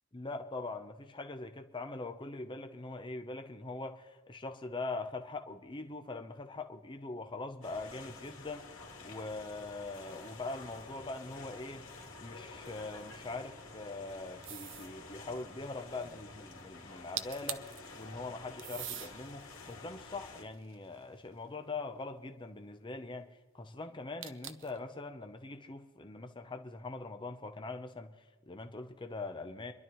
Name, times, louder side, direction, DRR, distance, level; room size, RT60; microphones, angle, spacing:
voice 1, 0.1-11.9 12.2-29.7, left 3 dB, 25° left, 6 dB, 0.8 m, -42 dB
sound 1, 7.6-20.4, left 3 dB, 80° left, 2.5 m, -50 dB
sound 2, 14.4-14.9 16.9-17.0 17.2-17.8 18.6-19.1 19.8-21.3 24.2-24.8, right 11 dB, 65° right, 0.7 m, -42 dB
27.5 x 11.5 x 3.1 m, 1.3 s
head